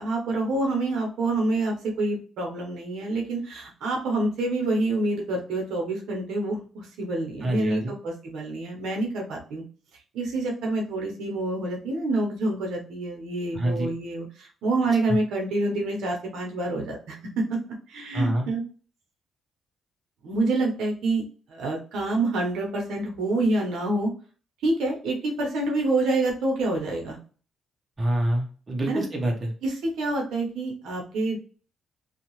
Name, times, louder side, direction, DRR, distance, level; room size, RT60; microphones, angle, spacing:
voice 1, 0.0-9.6 10.1-17.4 17.9-18.6 20.2-21.2 21.5-24.1 24.6-27.2 28.9-29.1 29.6-31.4, right 2 dB, 80° right, 1 dB, 0.9 m, -27 dB
voice 2, 7.4-7.9 13.5-13.9 18.1-18.5 28.0-29.5, right 1 dB, 30° right, 1 dB, 0.9 m, -26 dB
2.7 x 2.4 x 3.0 m, 0.40 s
cardioid pair, 90°, 0 cm